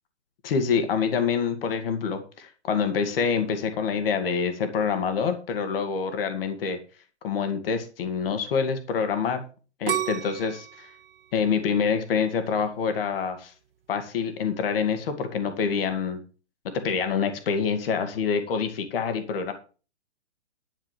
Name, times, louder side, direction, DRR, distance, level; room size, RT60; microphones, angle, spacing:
voice 1, 0.4-6.8 7.2-9.4 9.8-10.9 11.3-13.5 13.9-16.2 16.6-19.5, left 6 dB, 55° left, 7 dB, 2.2 m, -26 dB
sound 1, 9.9-12.8 13.3-13.8, right 10 dB, 60° right, 1.6 m, -33 dB
11.5 x 5.0 x 7.6 m, 0.36 s
hypercardioid pair, 150°, 34 cm